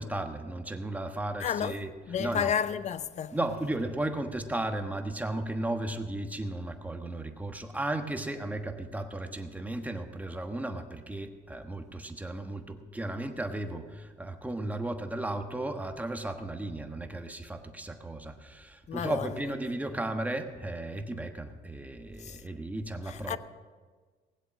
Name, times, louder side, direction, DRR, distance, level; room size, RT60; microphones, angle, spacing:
voice 1, 0.0-1.9 2.2-2.5 3.3-23.4, right 1 dB, 10° right, 1.2 m, -35 dB
voice 2, 1.4-3.4 18.9-19.3 22.2-22.4 23.1-23.4, left 8 dB, 45° left, 0.6 m, -32 dB
19.0 x 7.8 x 6.4 m
cardioid pair, 110°, 17 cm